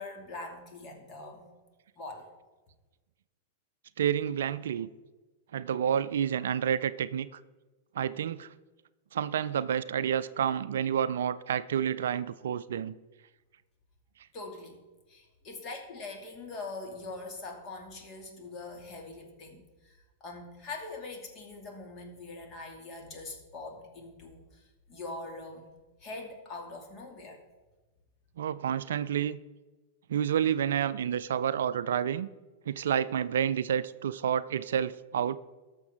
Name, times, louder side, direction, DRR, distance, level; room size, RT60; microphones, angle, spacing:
voice 1, 0.0-1.5 2.0-2.3 14.3-14.8 15.1-25.7 26.0-27.4, left 3 dB, 35° left, 2 dB, 2.6 m, -43 dB
voice 2, 4.0-4.9 5.5-7.4 7.9-8.5 9.1-12.9 28.4-29.4 30.1-32.3 32.7-35.4, right 9 dB, 65° right, 16 dB, 0.4 m, -29 dB
18.5 x 6.7 x 3.7 m, 1.2 s
figure-of-eight pair, 95°, 0 cm